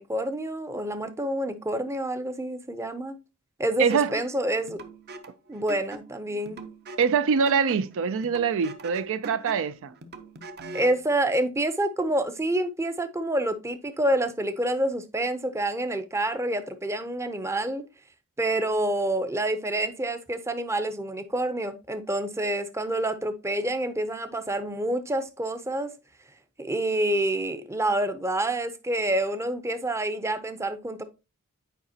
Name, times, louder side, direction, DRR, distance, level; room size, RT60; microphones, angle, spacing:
voice 1, 0.0-3.2 3.6-4.8 5.5-6.6 10.7-17.8 18.4-25.9 26.6-31.0, right 1 dB, 15° right, 0.6 m, -28 dB
voice 2, 3.8-4.1 7.0-9.9, right 6 dB, 65° right, 0.4 m, -24 dB
sound 1, 3.9-11.0, right 2 dB, 50° right, 0.8 m, -43 dB
9.2 x 4.9 x 2.8 m
head